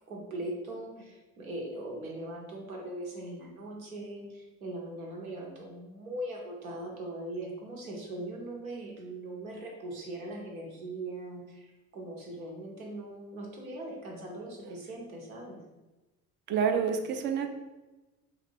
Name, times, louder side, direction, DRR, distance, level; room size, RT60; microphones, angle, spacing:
voice 1, 0.1-15.6, right 1 dB, 80° right, -1 dB, 0.8 m, -40 dB
voice 2, 16.5-17.5, right 6 dB, 30° right, 6 dB, 0.3 m, -28 dB
3.2 x 2.5 x 3.2 m, 1.1 s
figure-of-eight pair, 55°, 42 cm